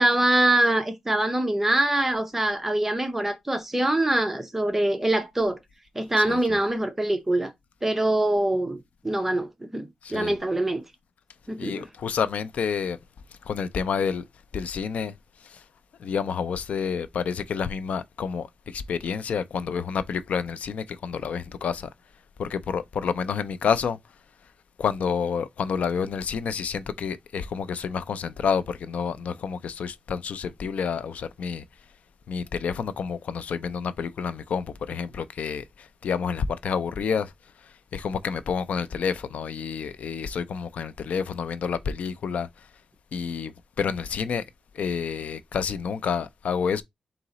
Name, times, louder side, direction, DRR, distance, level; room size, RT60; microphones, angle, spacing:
voice 1, 0.0-5.6 5.9-7.5 7.8-8.8 9.0-10.8 11.5-11.8, right 1 dB, 10° right, 0.7 m, -24 dB
voice 2, 6.2-6.6 10.0-10.3 11.6-13.0 13.5-14.2 14.5-15.1 15.4-15.6 16.0-21.9 22.4-24.0 24.8-31.6 32.3-37.3 37.9-42.5 43.1-43.5 43.8-44.4 44.7-46.8, left 6 dB, 70° left, 0.4 m, -29 dB
3.8 x 2.9 x 4.0 m
wide cardioid pair, 145°, 2 cm